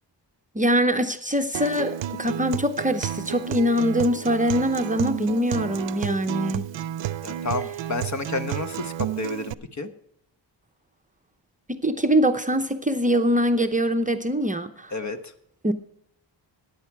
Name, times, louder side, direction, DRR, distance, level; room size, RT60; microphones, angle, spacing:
voice 1, 0.5-6.7 11.7-14.9 15.6-15.7, equal, 20° right, 6 dB, 0.7 m, -23 dB
Acoustic guitar, 1.5-9.5, right 11 dB, 90° right, 0.6 m, -31 dB
voice 2, 7.2-9.9 14.9-15.3, left 3 dB, 40° left, 9 dB, 1.1 m, -31 dB
14.5 x 10.0 x 4.6 m, 0.74 s
wide cardioid pair, 120°, 43 cm